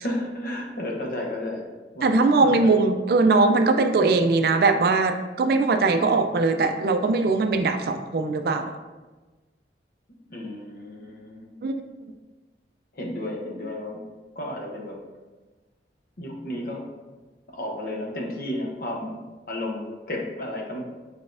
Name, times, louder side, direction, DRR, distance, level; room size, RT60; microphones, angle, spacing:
voice 1, 0.0-1.7 1.9-2.7 10.3-11.5 12.9-14.0 14.3-15.0 16.2-16.8 17.5-19.2 19.5-21.0, left 1 dB, 55° left, 0 dB, 0.8 m, -32 dB
voice 2, 2.0-8.7 11.6-11.7, right 3 dB, 55° right, 7 dB, 0.3 m, -20 dB
4.3 x 3.9 x 2.5 m, 1.2 s
head